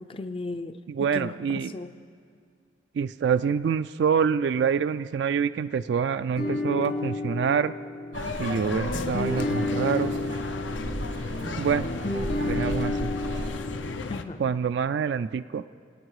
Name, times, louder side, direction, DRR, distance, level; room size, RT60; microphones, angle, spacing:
voice 1, 0.0-1.9 14.1-14.4, left 3 dB, 30° left, 9 dB, 0.4 m, -36 dB
voice 2, 0.9-1.7 3.0-7.7 8.4-10.1 11.6-11.9 12.4-13.1 14.4-15.6, right 6 dB, 65° right, 12 dB, 0.3 m, -26 dB
sound 1, 6.4-14.0, left 2 dB, 60° left, 1.6 m, -31 dB
sound 2, 8.1-14.2, left 4 dB, 85° left, 0.7 m, -36 dB
sound 3, 8.1-13.5, right 1 dB, 85° right, 1.5 m, -36 dB
25.5 x 8.9 x 4.8 m, 2.2 s
head